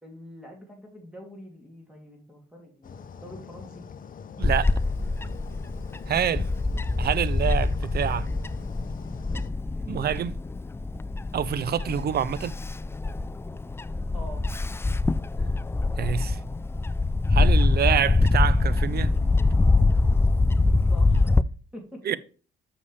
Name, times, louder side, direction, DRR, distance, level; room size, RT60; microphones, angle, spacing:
voice 1, 0.0-3.8 9.7-10.3 14.1-14.4 20.9-21.3 21.7-22.0, equal, 5° right, 2.8 m, -45 dB
sound 1, 2.8-9.5, left 6 dB, 45° left, 0.7 m, -43 dB
Bird / Wind, 4.4-21.4, left 3 dB, 10° left, 0.3 m, -24 dB
voice 2, 4.4-4.7 6.1-6.5 7.0-8.3 9.9-10.3 11.3-12.5 16.0-16.4 17.3-19.1 22.1-22.2, right 9 dB, 55° right, 0.6 m, -26 dB
7.1 x 6.8 x 3.3 m
cardioid pair, 90°, 20 cm